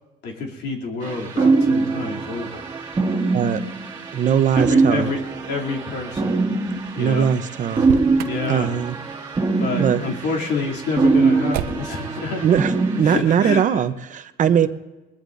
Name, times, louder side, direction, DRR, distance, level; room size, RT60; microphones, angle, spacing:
voice 1, 0.2-2.6 4.5-5.2 5.5-6.4 6.9-7.3 8.2-8.7 9.6-12.6 13.0-13.8, left 4 dB, 80° left, -1 dB, 2.9 m, -28 dB
sound 1, 1.0-13.0, right 3 dB, 25° right, 2.1 m, -23 dB
voice 2, 4.1-5.1 7.0-7.9 8.5-9.0 9.8-10.1 12.4-12.7 13.0-14.7, right 8 dB, 50° right, 11 dB, 0.8 m, -20 dB
Motor vehicle (road), 7.7-8.5 11.5-12.1, right 10 dB, 85° right, 0.7 m, -29 dB
21.5 x 21.0 x 2.6 m, 1.1 s
cardioid pair, 110°, 17 cm